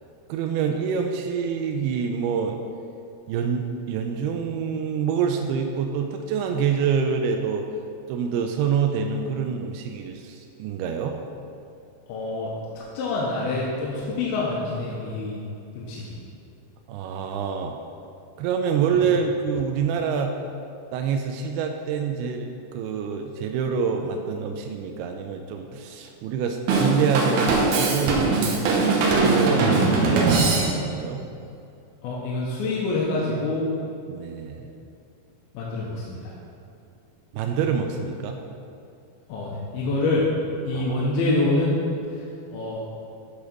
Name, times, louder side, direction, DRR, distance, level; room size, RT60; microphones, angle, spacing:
voice 1, 0.3-2.6 3.3-7.7 8.1-11.2 16.9-17.8 18.4-20.3 20.9-31.2 34.1-34.7 37.3-38.4 40.7-41.1, right 6 dB, 90° right, 4 dB, 2.6 m, -26 dB
voice 2, 12.1-15.4 15.7-16.2 18.9-19.0 32.0-33.7 35.5-36.3 39.3-40.3 40.7-41.8 42.1-42.8, left 2 dB, 80° left, -5 dB, 2.8 m, -26 dB
Drum kit / Drum, 26.7-31.0, right 3 dB, 70° right, 1.9 m, -21 dB
11.5 x 4.1 x 6.0 m, 2.5 s
omnidirectional pair, 4.5 m